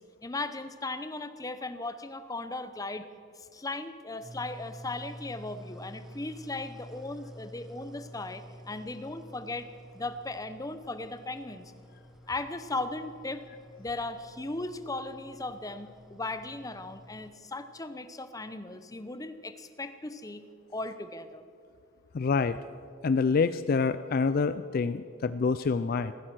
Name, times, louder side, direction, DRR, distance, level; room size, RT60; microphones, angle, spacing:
voice 1, 0.2-3.0 3.4-9.7 9.9-11.7 12.3-13.4 13.8-20.4 20.7-21.4, left 2 dB, 15° left, 11 dB, 0.7 m, -37 dB
sound 1, 4.2-17.3, equal, ahead, 1.4 m, -49 dB
voice 2, 22.1-22.6 23.0-26.1, left 4 dB, 45° left, 13 dB, 0.4 m, -26 dB
16.0 x 14.5 x 6.1 m, 2.3 s
head